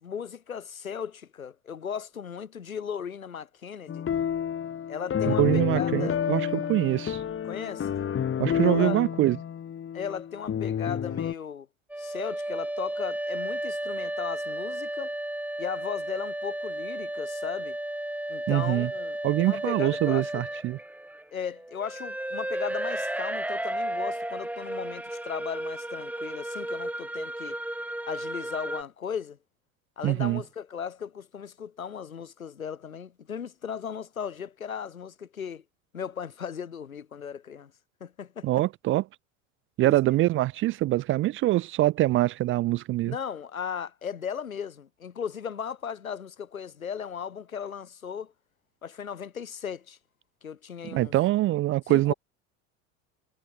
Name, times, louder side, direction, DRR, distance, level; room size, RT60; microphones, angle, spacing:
voice 1, 0.0-4.1 4.9-5.5 5.7-6.2 7.4-7.9 8.6-9.0 9.9-11.7 12.0-15.1 15.6-17.8 18.3-20.4 21.3-27.6 28.1-29.4 30.0-35.6 35.9-37.7 38.0-38.6 39.8-40.0 43.0-48.3 48.8-50.0 50.4-51.1 51.9-52.1, left 7 dB, 85° left, 4.1 m, -36 dB
sound 1, 3.9-11.3, left 8 dB, 30° left, 3.6 m, -29 dB
voice 2, 5.3-7.2 8.4-9.4 18.5-18.9 19.2-20.8 30.0-30.4 38.4-39.0 39.8-43.1 50.8-52.1, right 16 dB, 30° right, 0.5 m, -24 dB
sound 2, 11.9-28.8, right 1 dB, 5° right, 3.0 m, -33 dB
figure-of-eight pair, 75°, 41 cm